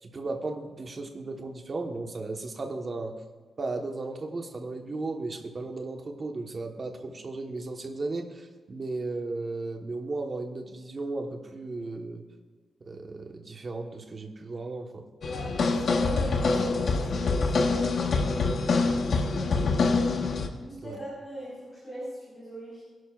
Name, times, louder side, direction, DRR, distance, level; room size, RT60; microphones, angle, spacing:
voice 1, 0.0-3.1 3.6-12.2 12.9-15.0 20.8-21.0, right 3 dB, 30° right, 3 dB, 1.3 m, -35 dB
sound 1, 15.2-20.5, left 3 dB, 55° left, 1.1 m, -25 dB
voice 2, 15.3-18.6 18.9-19.7 20.6-22.8, equal, 30° left, -7 dB, 4.4 m, -42 dB
23.5 x 11.0 x 2.5 m, 1.5 s
wide cardioid pair, 170°, 0 cm